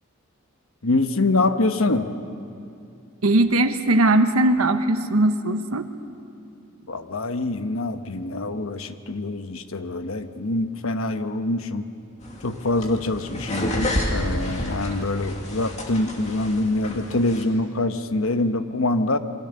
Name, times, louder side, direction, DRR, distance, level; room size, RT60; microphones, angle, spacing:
voice 1, 0.8-2.1 6.9-11.9 12.4-19.2, left 2 dB, 75° left, 9 dB, 1.1 m, -25 dB
voice 2, 3.2-5.9, right 1 dB, 85° right, 8 dB, 1.1 m, -19 dB
sound 1, 12.2-17.4, left 1 dB, 35° left, 2.5 m, -30 dB
28.5 x 23.5 x 6.9 m, 2.6 s
head